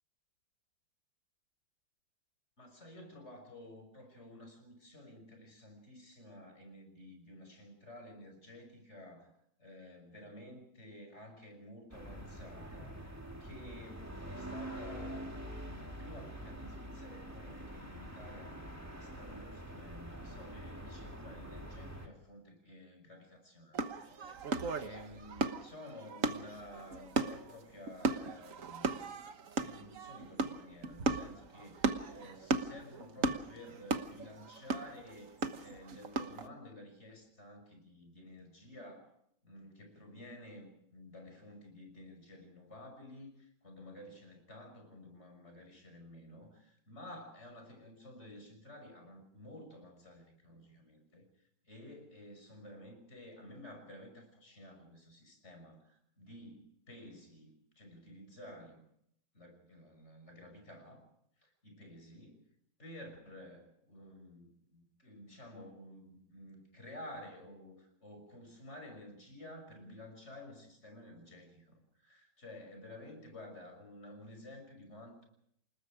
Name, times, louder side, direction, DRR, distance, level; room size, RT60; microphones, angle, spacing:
voice 1, 2.6-9.3 9.6-13.1 13.4-23.9 24.2-29.0 29.5-39.1 39.4-51.2 51.6-58.8 59.3-61.0 61.4-62.4 62.8-75.2, left 1 dB, 35° left, 5 dB, 6.4 m, -52 dB
sound 1, 11.9-22.1, right 1 dB, 10° right, 2.5 m, -45 dB
sound 2, 23.7-36.5, right 4 dB, 45° right, 1.5 m, -36 dB
29.0 x 19.5 x 5.0 m, 0.73 s
omnidirectional pair, 2.1 m